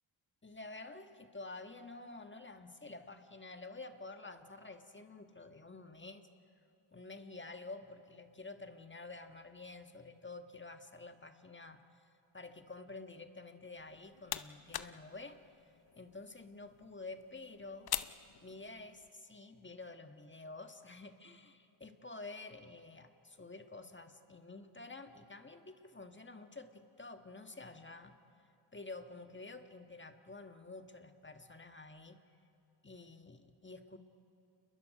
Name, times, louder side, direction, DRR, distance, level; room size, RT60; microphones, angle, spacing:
voice 1, 0.4-6.3 6.9-11.8 12.3-15.4 16.0-17.9 18.4-28.2 28.7-32.2 32.8-34.0, left 3 dB, 25° left, 6 dB, 1.6 m, -50 dB
sound 1, 13.8-19.1, left 9 dB, 50° left, 0.8 m, -45 dB
29.0 x 22.0 x 5.2 m, 2.8 s
supercardioid pair, 55°, 48 cm